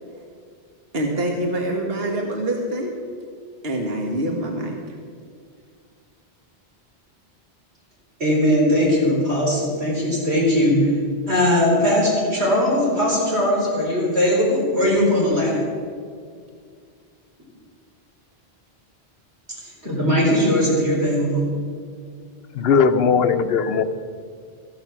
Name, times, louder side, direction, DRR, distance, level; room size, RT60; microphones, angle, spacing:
voice 1, 0.9-2.9 3.6-4.7, right 1 dB, 70° right, 1 dB, 1.7 m, -25 dB
voice 2, 8.2-10.9 11.3-15.6 19.6-21.5, left 1 dB, 85° right, -4 dB, 4.7 m, -19 dB
voice 3, 22.5-23.8, left 5 dB, 70° left, 11 dB, 0.9 m, -18 dB
14.0 x 11.5 x 6.1 m, 2.1 s
omnidirectional pair, 1.1 m